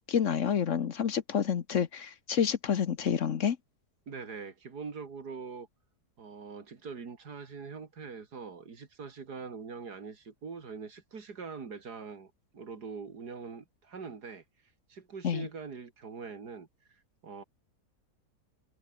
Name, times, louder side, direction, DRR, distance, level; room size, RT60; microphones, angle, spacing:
voice 1, 0.0-3.6 15.2-15.5, left 7 dB, 55° left, 1.3 m, -29 dB
voice 2, 4.1-5.7 6.2-14.4 14.9-17.4, right 5 dB, 80° right, 3.0 m, -43 dB
omnidirectional pair, 1.7 m